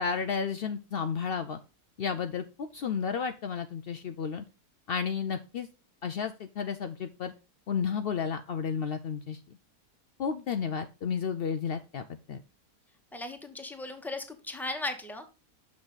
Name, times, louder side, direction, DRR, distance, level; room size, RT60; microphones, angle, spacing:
voice 1, 0.0-1.6 2.0-4.4 4.9-5.7 6.0-7.3 7.7-9.4 10.2-12.4, left 6 dB, 80° left, 8 dB, 0.5 m, -32 dB
voice 2, 13.1-15.3, left 2 dB, ahead, 6 dB, 0.8 m, -37 dB
6.5 x 6.0 x 3.9 m, 0.30 s
omnidirectional pair, 1.6 m